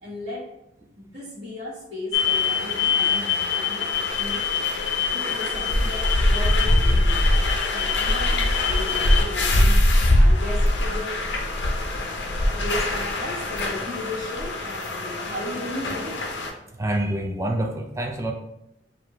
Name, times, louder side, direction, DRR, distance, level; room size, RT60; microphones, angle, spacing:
voice 1, 0.0-0.6 0.9-4.4 5.1-9.9 10.1-11.3 12.5-16.3, left 1 dB, 35° right, -9 dB, 1.4 m, -35 dB
sound 1, 2.1-16.5, left 2 dB, 75° left, 0.7 m, -22 dB
voice 2, 16.7-18.3, right 1 dB, 15° right, 2 dB, 0.4 m, -27 dB
5.1 x 2.7 x 2.9 m, 0.84 s
head